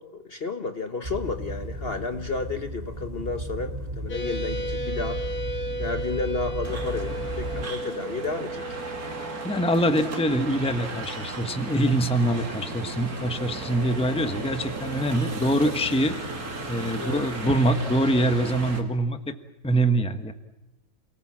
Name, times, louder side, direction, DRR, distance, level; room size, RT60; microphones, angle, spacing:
voice 1, 0.0-5.2 5.8-8.8 17.0-17.2, left 4 dB, 40° left, 8 dB, 1.2 m, -32 dB
sound 1, 1.0-7.6, equal, 40° right, 4.8 m, -34 dB
sound 2, 4.1-12.2, right 2 dB, 75° left, 2.7 m, -35 dB
sound 3, 6.6-18.8, right 3 dB, 70° right, 3.1 m, -35 dB
voice 2, 9.4-16.1 16.7-19.4 19.6-20.3, right 1 dB, 5° left, 8 dB, 1.1 m, -24 dB
28.5 x 19.0 x 7.4 m, 1.0 s
omnidirectional pair, 1.6 m